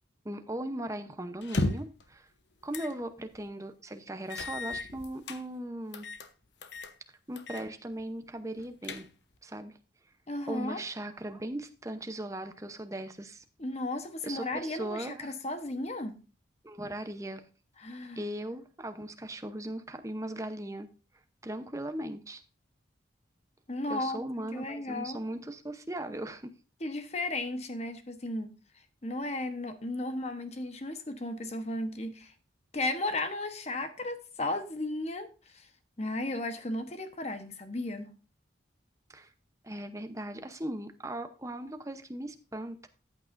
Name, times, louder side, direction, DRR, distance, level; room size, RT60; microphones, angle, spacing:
voice 1, 0.2-2.3 2.6-6.1 7.3-9.1 9.4-9.8 10.5-13.4 14.2-15.4 16.6-17.4 18.2-20.9 21.4-22.4 23.9-26.5 39.1-39.3 39.6-42.9, right 1 dB, 15° right, 8 dB, 0.8 m, -38 dB
sound 1, 1.4-2.0 2.7-3.0 3.4-3.5 4.3-5.4 5.9-6.3 6.6-6.9 7.4-7.7 8.0-8.1 8.6-9.4, left 2 dB, 65° left, 1.0 m, -34 dB
voice 2, 10.3-10.8 13.6-16.2 17.8-18.2 23.7-24.2 24.5-25.2 26.8-28.5 29.0-32.3 32.7-35.3 35.5-35.7 36.0-38.1, left 2 dB, 35° left, 8 dB, 1.1 m, -34 dB
14.0 x 8.6 x 2.6 m, 0.34 s
head